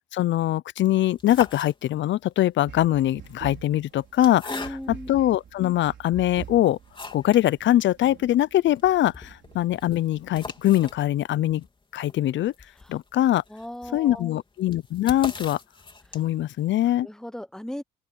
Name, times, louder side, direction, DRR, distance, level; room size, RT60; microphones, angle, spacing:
voice 1, 0.1-4.5 4.9-6.8 7.1-11.6 11.9-12.5 12.9-13.4 13.9-15.6 16.1-17.1, left 13 dB, 70° left, 0.6 m, -22 dB
sound 1, 1.1-2.2 3.1-5.2 5.8-5.9 6.3-7.5 7.8-7.9 8.2-8.3 8.6-16.5, left 3 dB, 25° left, 3.5 m, -41 dB
sound 2, 2.6-11.2, right 9 dB, 65° right, 4.2 m, -46 dB
voice 2, 4.5-5.1 12.8-12.9 13.5-14.3 17.0-17.8, left 1 dB, 5° left, 0.8 m, -37 dB
open air
cardioid pair, 90°, 20 cm